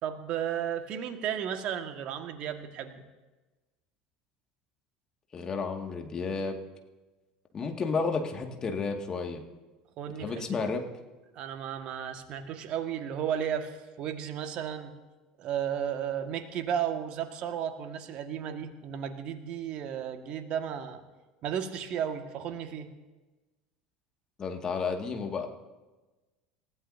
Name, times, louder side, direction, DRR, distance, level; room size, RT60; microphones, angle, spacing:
voice 1, 0.0-3.0 10.0-10.6 11.3-14.9 15.4-21.0 21.4-22.9, right 9 dB, 50° right, 6 dB, 1.7 m, -34 dB
voice 2, 5.3-6.6 7.5-9.4 10.2-10.8 24.4-25.5, left 4 dB, 30° left, 3 dB, 2.1 m, -32 dB
28.5 x 15.0 x 2.8 m, 1.2 s
figure-of-eight pair, 70°, 2 cm